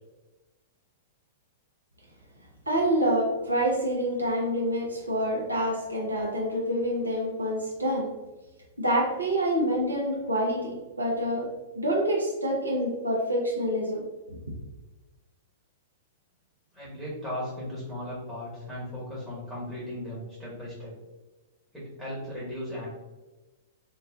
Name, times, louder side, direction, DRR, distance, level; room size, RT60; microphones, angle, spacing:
voice 1, 2.7-8.1 8.8-11.5 11.7-14.0, equal, 80° right, -2 dB, 0.7 m, -27 dB
voice 2, 16.7-20.9 21.7-22.9, left 1 dB, 5° left, -9 dB, 1.2 m, -37 dB
4.0 x 2.3 x 2.3 m, 1.1 s
figure-of-eight pair, 105°, 0 cm